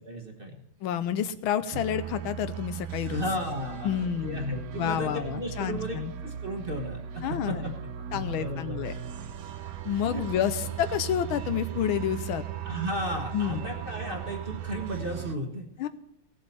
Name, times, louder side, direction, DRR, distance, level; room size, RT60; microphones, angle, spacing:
voice 1, 0.0-0.5 1.7-1.8 3.1-6.0 6.2-7.7 8.1-8.9 9.9-10.2 12.6-15.7, equal, 30° right, 1 dB, 1.2 m, -34 dB
voice 2, 0.8-3.2 3.8-4.4 4.7-6.1 7.2-7.7 8.1-8.9 9.8-12.4 13.3-13.7 15.8-15.9, left 9 dB, 85° left, 12 dB, 1.6 m, -29 dB
sound 1, 1.7-15.4, right 9 dB, 65° right, 0.9 m, -37 dB
18.0 x 7.5 x 4.2 m, 0.83 s
omnidirectional pair, 2.2 m